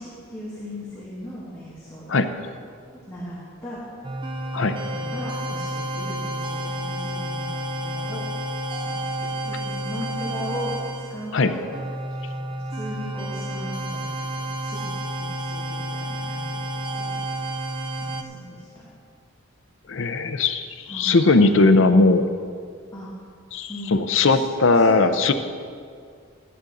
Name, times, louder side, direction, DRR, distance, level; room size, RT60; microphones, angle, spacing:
voice 1, 0.0-2.1 3.1-3.8 4.9-8.2 8.8-10.7 11.1-11.7 12.3-16.7 17.0-17.2 18.0-18.9 20.9-21.7 22.9-23.1 23.7-24.0 24.3-24.4 24.7-25.0, equal, 15° left, -10 dB, 2.5 m, -38 dB
sound 1, 4.0-18.2, right 1 dB, 25° right, 0.6 m, -30 dB
voice 2, 19.9-22.2 23.5-25.3, left 3 dB, 70° left, 9 dB, 0.6 m, -18 dB
14.0 x 11.0 x 3.9 m, 2.2 s
head